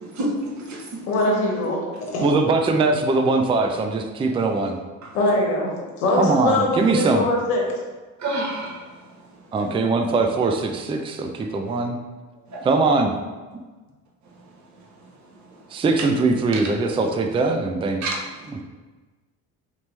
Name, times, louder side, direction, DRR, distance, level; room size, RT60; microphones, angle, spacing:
voice 1, 0.1-0.8 5.0-5.1 8.2-8.8 9.6-9.7 12.5-12.6 18.0-18.1, right 1 dB, 40° right, -2 dB, 1.2 m, -28 dB
voice 2, 1.1-2.3 5.1-7.6, left 1 dB, 85° left, -2 dB, 1.0 m, -22 dB
voice 3, 2.2-4.8 6.2-7.2 9.5-12.0 12.6-13.1 15.7-18.0, right 3 dB, 15° right, 4 dB, 0.4 m, -21 dB
4.3 x 2.9 x 3.3 m, 1.3 s
hypercardioid pair, 60°, 44 cm